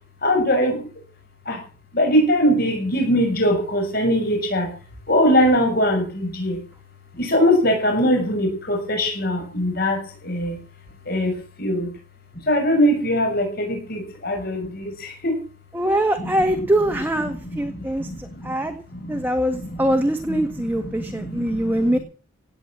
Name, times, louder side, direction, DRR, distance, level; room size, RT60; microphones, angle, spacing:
voice 1, 0.2-0.9 1.4-1.6 1.9-4.7 5.1-6.6 7.1-10.6 11.1-11.9 12.4-15.4 16.2-16.5 17.3-19.3 19.5-19.9 20.3-22.0, equal, 50° left, 2 dB, 6.9 m, -22 dB
voice 2, 15.7-18.8 19.1-22.0, right 1 dB, 10° right, 5 dB, 1.7 m, -23 dB
18.0 x 9.2 x 7.5 m, 0.38 s
head